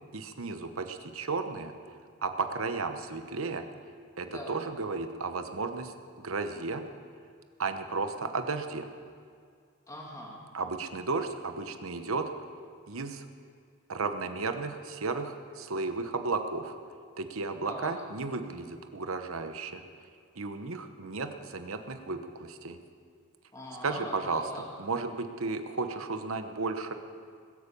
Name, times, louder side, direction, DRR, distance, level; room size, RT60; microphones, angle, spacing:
voice 1, 0.1-1.7 2.2-3.6 4.2-6.8 7.6-8.9 10.5-12.3 12.9-13.2 13.9-16.8 17.2-19.8 20.4-22.8 23.8-24.4 24.8-26.9, right 4 dB, 70° right, 7 dB, 1.0 m, -34 dB
voice 2, 4.2-4.6 9.9-10.4 17.6-17.9 23.5-24.7, left 1 dB, 15° left, -3 dB, 2.2 m, -42 dB
21.5 x 8.4 x 6.9 m, 2.2 s
head